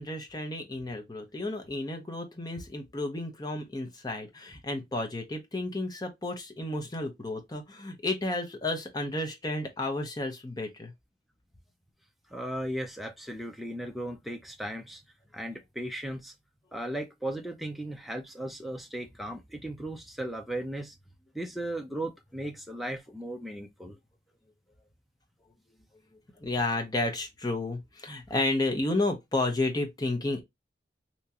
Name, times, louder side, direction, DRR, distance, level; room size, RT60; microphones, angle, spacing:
voice 1, 0.0-10.9 26.4-30.4, left 2 dB, 20° left, 0.8 m, -32 dB
voice 2, 12.3-15.0 15.3-16.3 16.7-20.9 21.3-24.0, right 1 dB, ahead, 0.5 m, -36 dB
3.5 x 2.9 x 2.8 m
head